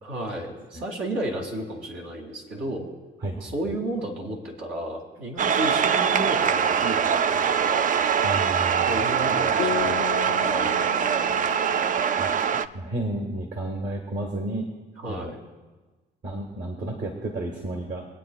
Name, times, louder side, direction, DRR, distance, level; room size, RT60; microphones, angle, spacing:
voice 1, 0.0-2.9 3.4-7.9 8.8-12.1 15.0-15.4, right 1 dB, 85° right, 1 dB, 2.1 m, -33 dB
voice 2, 3.2-3.5 8.2-8.9 12.2-12.3 12.7-14.7 15.1-15.3 16.2-18.1, right 1 dB, 60° right, 1 dB, 1.6 m, -31 dB
sound 1, 5.4-12.7, right 7 dB, 40° right, 0.4 m, -23 dB
sound 2, 9.6-13.1, left 12 dB, 55° left, 0.4 m, -35 dB
26.0 x 9.2 x 2.3 m, 1.3 s
cardioid pair, 90°, 20 cm